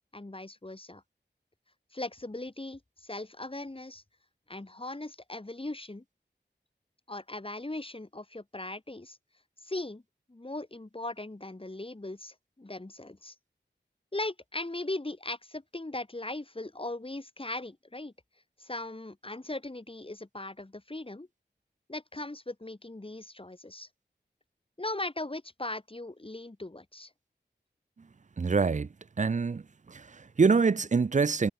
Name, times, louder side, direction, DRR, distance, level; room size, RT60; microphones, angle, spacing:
voice 1, 0.1-1.0 1.9-4.0 4.5-6.0 7.1-9.2 9.6-10.0 10.3-13.3 14.1-18.1 18.6-21.3 21.9-23.9 24.8-27.1, left 2 dB, 30° left, 3.0 m, -39 dB
voice 2, 28.4-28.9 29.2-29.6 29.9-31.5, right 4 dB, 40° right, 0.5 m, -25 dB
wide cardioid pair, 50°, 18 cm